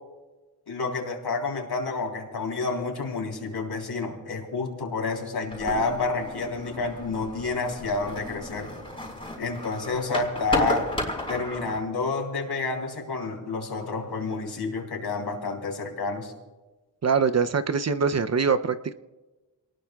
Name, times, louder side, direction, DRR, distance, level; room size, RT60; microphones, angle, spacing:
voice 1, 0.7-8.7 9.4-10.9 11.3-16.3, left 3 dB, 65° left, 1 dB, 3.5 m, -29 dB
sound 1, 5.5-11.8, left 1 dB, 10° left, 4.5 m, -34 dB
voice 2, 17.0-18.9, right 5 dB, 40° right, 10 dB, 0.6 m, -23 dB
27.5 x 19.5 x 2.3 m, 1.2 s
wide cardioid pair, 115°, 41 cm